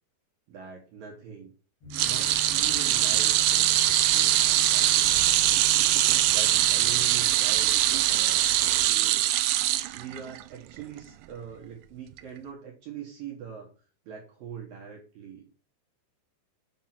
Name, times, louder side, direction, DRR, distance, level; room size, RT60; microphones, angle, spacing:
voice 1, 0.5-1.5 2.0-4.9 6.3-9.3 9.9-13.7 14.1-15.5, right 7 dB, 65° right, -1 dB, 2.6 m, -43 dB
sound 1, 1.8-7.2, left 3 dB, 45° left, 1.6 m, -46 dB
sound 2, 1.9-10.4 10.8-11.0 12.2-12.3, right 14 dB, 80° right, 2.7 m, -23 dB
sound 3, 2.0-8.9, left 14 dB, 90° left, 3.1 m, -41 dB
7.5 x 5.5 x 5.9 m, 0.37 s
omnidirectional pair, 5.5 m